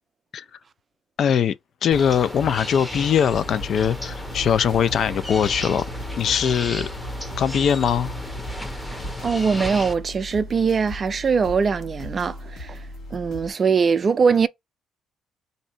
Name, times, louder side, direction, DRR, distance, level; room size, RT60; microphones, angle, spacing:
voice 1, 1.2-1.5 1.8-5.9 6.2-6.9 7.4-8.1, left 8 dB, 60° left, 0.3 m, -21 dB
sound 1, 1.9-9.9, equal, 5° left, 0.8 m, -34 dB
sound 2, 3.3-13.5, left 1 dB, 85° left, 1.5 m, -37 dB
voice 2, 8.9-14.5, right 5 dB, 40° right, 0.3 m, -22 dB
2.7 x 2.6 x 4.2 m
cardioid pair, 90°, 0 cm